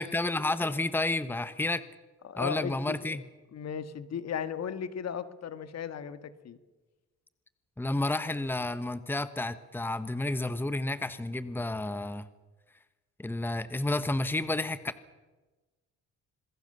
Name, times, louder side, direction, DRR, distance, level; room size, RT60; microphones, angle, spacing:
voice 1, 0.0-1.8 2.4-3.2 7.8-12.3 13.2-15.0, left 2 dB, 5° left, 12 dB, 1.2 m, -31 dB
voice 2, 2.2-3.2 3.5-6.6, left 7 dB, 60° left, 11 dB, 1.8 m, -36 dB
27.0 x 20.5 x 6.8 m, 1.2 s
cardioid pair, 90°, 30 cm